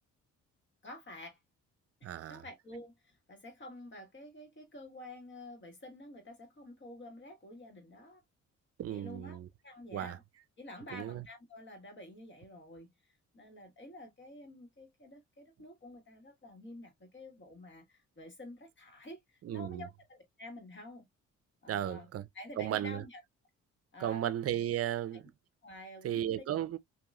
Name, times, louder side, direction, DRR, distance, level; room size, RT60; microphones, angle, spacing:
voice 1, 0.8-1.4 2.0-8.2 8.9-10.2 10.6-21.0 21.6-22.1 22.3-23.2 23.9-24.3 25.1-25.2 25.6-26.4, left 1 dB, 40° left, 1.9 m, -50 dB
voice 2, 2.0-2.4 8.8-9.5 9.9-10.2 10.9-11.2 19.4-19.9 21.7-22.3 22.6-23.0 24.0-25.3 26.0-26.8, right 11 dB, 50° right, 0.6 m, -35 dB
3.0 x 2.8 x 2.4 m
cardioid pair, 90°, 30 cm